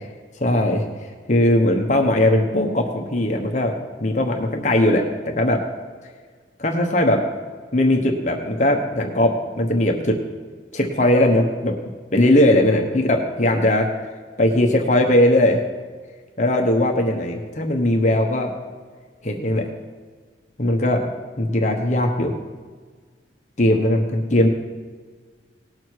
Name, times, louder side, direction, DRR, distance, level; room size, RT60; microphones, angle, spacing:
voice 1, 0.4-5.6 6.6-7.2 7.7-10.2 10.7-11.7 12.1-13.9 14.4-15.6 16.4-18.5 19.2-19.6 20.6-21.0 21.4-22.3 23.6-24.5, left 1 dB, 40° left, 2 dB, 1.0 m, -19 dB
18.5 x 6.5 x 4.6 m, 1.5 s
head